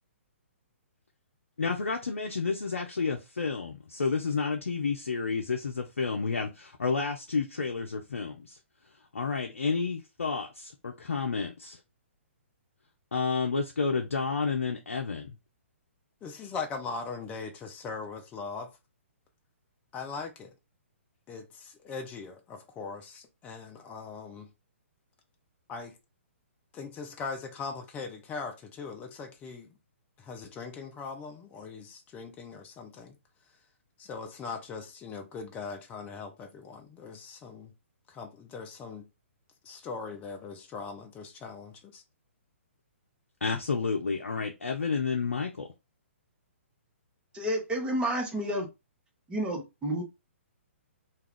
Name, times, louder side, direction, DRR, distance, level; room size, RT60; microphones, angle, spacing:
voice 1, 1.6-8.6 9.1-11.8 13.1-15.3 43.4-45.7, left 4 dB, 75° left, 0.5 m, -30 dB
voice 2, 16.2-18.7 19.9-20.5 21.3-24.5 25.7-26.0 26.7-29.7 30.2-33.2 34.0-37.7 38.1-39.1 39.6-42.0, left 4 dB, 20° left, 0.5 m, -40 dB
voice 3, 47.3-48.7 49.3-50.0, right 1 dB, 10° right, 0.8 m, -30 dB
2.3 x 2.3 x 3.4 m
figure-of-eight pair, 125°, 7 cm